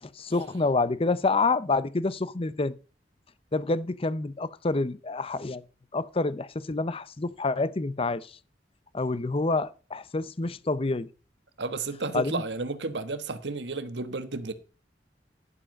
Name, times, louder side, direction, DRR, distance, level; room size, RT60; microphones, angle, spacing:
voice 1, 0.1-2.7 3.5-5.6 5.9-8.4 8.9-11.1 12.1-12.4, left 3 dB, 35° left, 0.6 m, -27 dB
voice 2, 11.6-14.5, right 3 dB, 85° right, 1.2 m, -32 dB
11.5 x 7.6 x 5.3 m
head